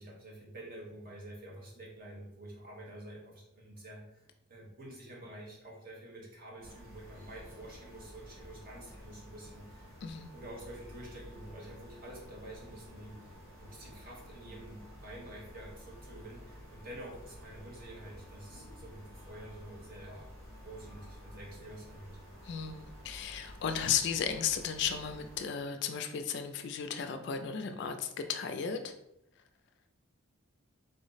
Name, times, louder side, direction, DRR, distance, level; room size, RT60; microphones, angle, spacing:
voice 1, 0.0-9.9 10.3-20.3 20.6-22.2, right 1 dB, 45° right, -2 dB, 1.0 m, -48 dB
sound 1, 6.6-25.4, equal, 70° right, 1.4 m, -51 dB
voice 2, 22.4-28.9, left 7 dB, 55° left, 7 dB, 0.3 m, -34 dB
3.8 x 2.0 x 3.9 m, 0.81 s
head